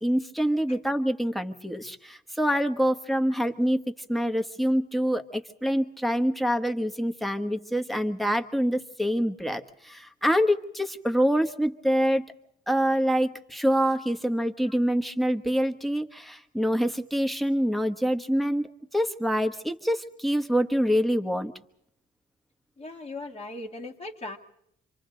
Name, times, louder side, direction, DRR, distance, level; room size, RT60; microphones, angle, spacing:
voice 1, 0.0-12.2 12.7-21.5, equal, ahead, 5 dB, 1.3 m, -26 dB
voice 2, 22.8-24.4, left 2 dB, 30° left, -2 dB, 1.9 m, -38 dB
27.0 x 25.5 x 3.9 m, 0.74 s
cardioid pair, 90°, 20 cm